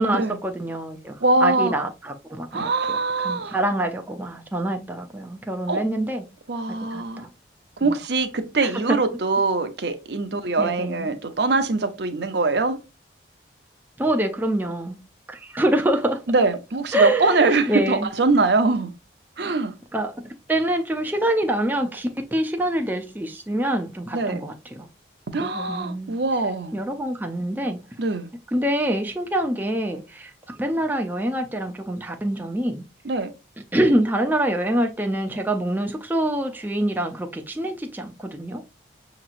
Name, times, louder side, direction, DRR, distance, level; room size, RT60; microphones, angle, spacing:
voice 1, 0.0-1.1 1.4-6.2 6.9-7.0 7.8-8.0 8.6-9.0 10.6-11.1 14.0-15.0 15.3-16.2 16.9-18.1 19.9-24.9 25.4-26.2 26.7-27.8 28.5-32.8 33.7-38.6, right 1 dB, 10° right, 0.5 m, -25 dB
voice 2, 1.2-1.7 2.5-3.6 5.7-5.8 6.5-7.3 7.8-12.8 16.3-18.9 19.4-19.7 24.1-24.4 25.3-26.7 28.0-28.3 33.0-33.3, right 3 dB, 60° right, 0.7 m, -23 dB
6.5 x 2.9 x 2.4 m
head